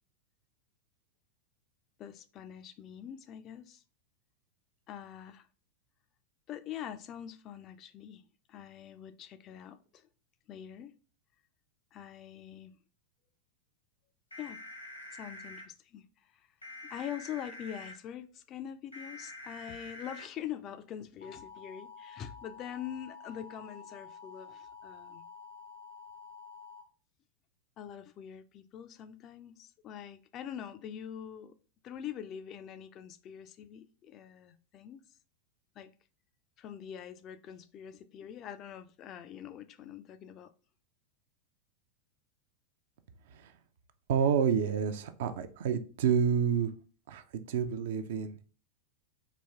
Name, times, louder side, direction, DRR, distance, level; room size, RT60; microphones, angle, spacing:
voice 1, 2.0-3.8 4.9-5.5 6.5-8.2 8.5-10.1 10.5-11.0 11.9-12.7 14.4-14.6 15.1-16.5 16.8-25.3 27.8-31.6 31.8-35.0 35.8-35.9 36.6-40.5, left 9 dB, 35° left, 0.4 m, -44 dB
sound 1, 14.3-15.6 16.6-17.9 18.9-20.2 21.2-26.8, left 3 dB, 80° left, 1.1 m, -48 dB
voice 2, 44.1-46.7 47.1-48.4, right 7 dB, 55° right, 0.5 m, -29 dB
4.1 x 3.0 x 3.4 m
figure-of-eight pair, 90°, 0 cm